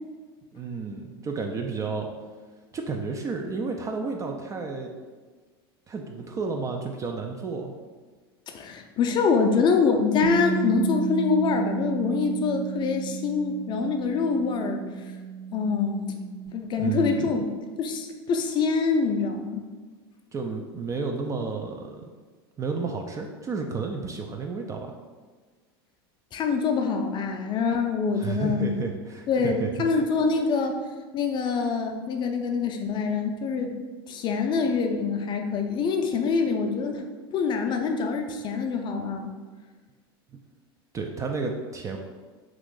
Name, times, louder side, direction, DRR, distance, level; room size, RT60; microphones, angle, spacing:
voice 1, 0.5-2.1 2.7-4.9 5.9-7.7 16.8-17.3 20.3-22.0 22.6-24.9 28.1-29.7 40.9-42.0, right 4 dB, 25° right, 2 dB, 0.3 m, -31 dB
voice 2, 8.5-14.8 15.5-16.1 16.5-17.5 17.8-19.6 26.3-28.8 29.3-30.8 31.1-33.7 34.1-37.0 37.3-39.3, left 5 dB, 35° left, 4 dB, 0.4 m, -25 dB
Bass guitar, 10.2-16.5, right 7 dB, 85° right, 0.5 m, -33 dB
3.0 x 2.5 x 3.7 m, 1.4 s
hypercardioid pair, 100°, 13 cm